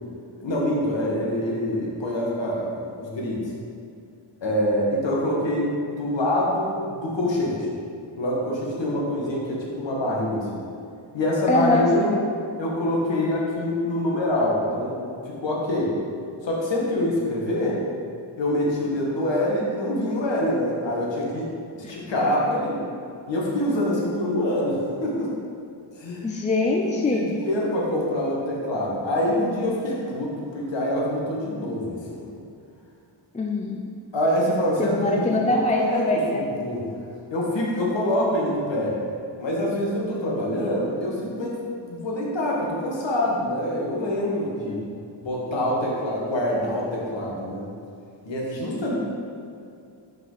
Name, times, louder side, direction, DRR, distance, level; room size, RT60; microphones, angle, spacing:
voice 1, 0.4-3.4 4.4-7.7 8.2-10.6 11.1-12.1 12.6-15.9 16.4-17.8 18.4-21.5 21.9-22.8 23.3-25.3 26.0-26.2 26.7-32.2 34.1-36.9 37.3-39.0 39.4-41.6 41.8-44.8 45.2-47.7 48.2-49.0, left 1 dB, 65° left, -3 dB, 1.4 m, -25 dB
voice 2, 11.5-12.2 21.8-21.9 26.2-27.3 33.3-33.8 34.8-36.4 44.6-44.8, left 2 dB, 15° left, 0 dB, 0.3 m, -23 dB
5.3 x 5.2 x 3.9 m, 2.4 s
wide cardioid pair, 100°, 47 cm